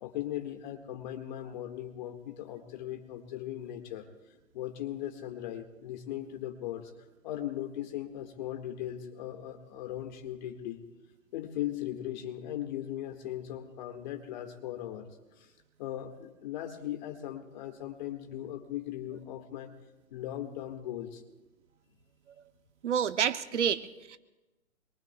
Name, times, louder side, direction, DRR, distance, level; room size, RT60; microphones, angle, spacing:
voice 1, 0.0-4.1 4.5-6.9 7.2-10.8 11.3-15.1 15.4-15.5 15.8-19.7 20.1-21.2, left 12 dB, 30° left, 4 dB, 1.8 m, -38 dB
voice 2, 22.8-24.2, right 8 dB, 55° right, 12 dB, 0.8 m, -29 dB
25.5 x 22.5 x 2.3 m, 1.1 s
hypercardioid pair, 150°, 42 cm